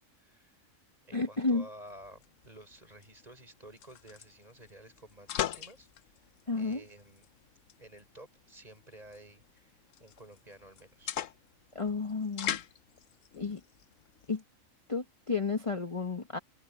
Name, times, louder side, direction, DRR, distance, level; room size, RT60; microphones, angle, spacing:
voice 1, 0.2-0.6 1.0-5.9 6.2-7.3 7.8-11.1, right 1 dB, 30° right, 6.5 m, -53 dB
voice 2, 1.1-1.7 6.5-6.8 11.7-12.6 13.4-13.6 14.3-14.4 14.9-16.4, left 4 dB, 25° left, 1.2 m, -32 dB
sound 1, 1.9-14.4, left 11 dB, 70° left, 1.1 m, -42 dB
omnidirectional pair, 1.4 m